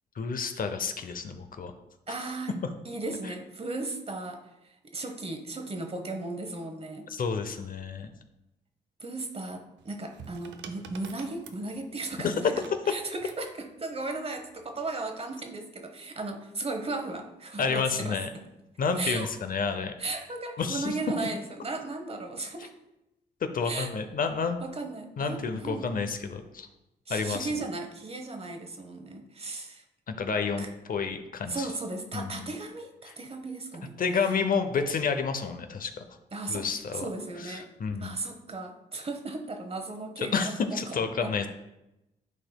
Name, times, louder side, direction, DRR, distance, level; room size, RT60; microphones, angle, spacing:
voice 1, 0.2-1.7 3.2-3.3 7.1-8.1 12.2-12.3 17.6-18.3 18.8-19.9 20.6-20.9 23.5-24.6 25.2-26.7 27.1-27.5 30.1-31.7 32.1-32.5 33.1-33.2 34.0-36.0 36.5-37.1 37.4-38.1 40.2-41.5, left 5 dB, 50° left, 8 dB, 0.7 m, -30 dB
voice 2, 2.1-2.6 2.8-7.1 9.0-12.6 12.9-18.5 19.0-19.3 20.0-22.7 23.6-23.9 24.6-25.9 27.1-29.8 30.6-30.7 31.5-34.0 36.3-36.7 36.9-37.7 38.0-40.8 41.2-41.3, right 2 dB, 35° right, 5 dB, 1.0 m, -36 dB
sound 1, 9.8-13.5 14.5-14.9, right 7 dB, 85° right, 0.6 m, -48 dB
11.0 x 4.3 x 2.3 m, 0.93 s
cardioid pair, 65°, 18 cm